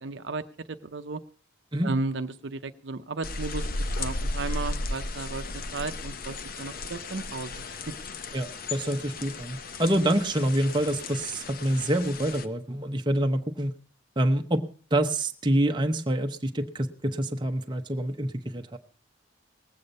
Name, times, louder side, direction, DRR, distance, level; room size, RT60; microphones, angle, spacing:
voice 1, 0.0-1.2 1.8-3.7 4.0-5.4 5.7-7.5, right 3 dB, 60° right, 9 dB, 0.7 m, -34 dB
sound 1, 3.2-12.5, left 2 dB, 45° left, 0.7 m, -35 dB
voice 2, 8.3-13.7 14.2-14.6 14.9-18.8, right 1 dB, 20° right, 4 dB, 0.8 m, -26 dB
19.5 x 8.5 x 5.3 m, 0.41 s
head